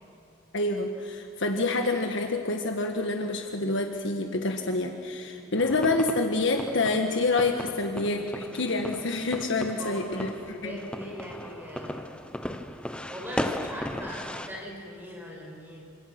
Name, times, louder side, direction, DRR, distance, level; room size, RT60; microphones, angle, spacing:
voice 1, 0.5-10.8, left 2 dB, 65° left, 4 dB, 1.5 m, -27 dB
sound 1, 5.6-14.5, left 1 dB, 5° left, 0.9 m, -37 dB
voice 2, 9.7-12.1 13.1-15.8, equal, 10° right, -3 dB, 6.9 m, -40 dB
28.0 x 25.5 x 6.1 m, 2.4 s
head